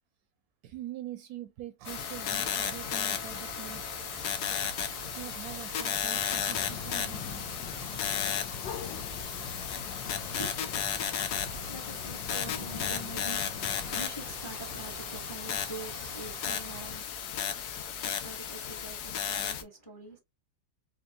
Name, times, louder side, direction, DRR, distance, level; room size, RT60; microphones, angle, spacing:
voice 1, 0.6-3.8 5.1-7.5, right 12 dB, 70° right, 1.0 m, -44 dB
sound 1, 1.8-19.6, left 8 dB, 70° left, 1.2 m, -34 dB
sound 2, 1.8-16.9, right 10 dB, 90° right, 1.4 m, -48 dB
sound 3, 6.5-14.1, left 9 dB, 90° left, 1.4 m, -43 dB
voice 2, 10.0-20.2, right 2 dB, 20° left, 0.8 m, -45 dB
4.3 x 2.9 x 2.7 m
omnidirectional pair, 1.9 m